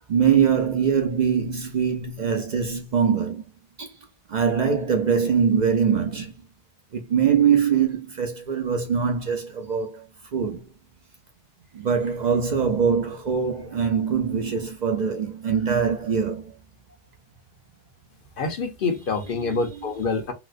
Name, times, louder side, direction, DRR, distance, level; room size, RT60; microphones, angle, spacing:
voice 1, 0.1-3.4 3.8-3.9 4.3-6.4 6.9-10.1 10.3-10.7 11.7-16.5 19.4-19.9, right 7 dB, 55° right, 0.6 m, -23 dB
voice 2, 18.4-20.3, left 4 dB, 65° left, 0.9 m, -26 dB
4.0 x 2.1 x 2.4 m
omnidirectional pair, 1.0 m